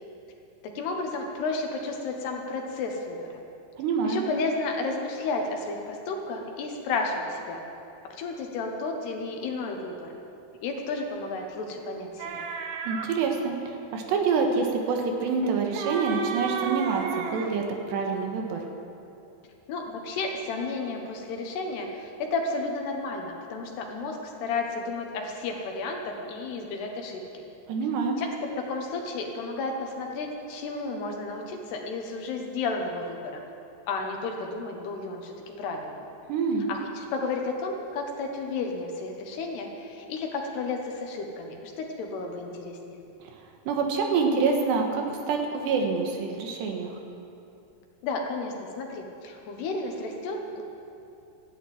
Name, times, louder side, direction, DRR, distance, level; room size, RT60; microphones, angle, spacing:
voice 1, 0.6-3.4 4.0-7.6 8.2-10.1 10.6-12.5 19.7-27.4 28.2-28.3 28.6-33.4 33.9-36.1 36.7-43.0 48.0-50.6, left 3 dB, 70° left, 2 dB, 3.2 m, -32 dB
voice 2, 3.8-4.2 12.9-18.6 27.7-28.2 36.3-36.7 43.7-46.9, right 5 dB, 75° right, 2 dB, 3.4 m, -26 dB
sound 1, 12.2-13.1 15.4-17.6, right 6 dB, 90° right, 3.4 m, -32 dB
14.5 x 10.5 x 9.1 m, 2.7 s
omnidirectional pair, 5.2 m